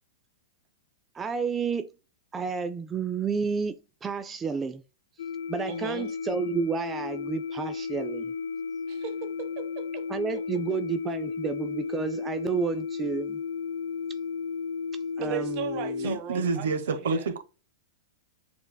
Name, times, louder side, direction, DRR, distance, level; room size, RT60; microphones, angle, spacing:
voice 1, 1.1-1.9 2.3-4.8 5.5-8.3 10.1-13.4 15.2-16.1, right 5 dB, 20° right, 0.4 m, -31 dB
sound 1, 5.2-16.2, left 5 dB, 75° left, 0.5 m, -34 dB
voice 2, 5.7-6.1 8.9-10.0 15.2-17.3, right 8 dB, 45° right, 1.0 m, -37 dB
voice 3, 16.0-17.4, right 4 dB, 80° right, 0.9 m, -28 dB
6.9 x 3.3 x 2.2 m
hypercardioid pair, 115°, 0 cm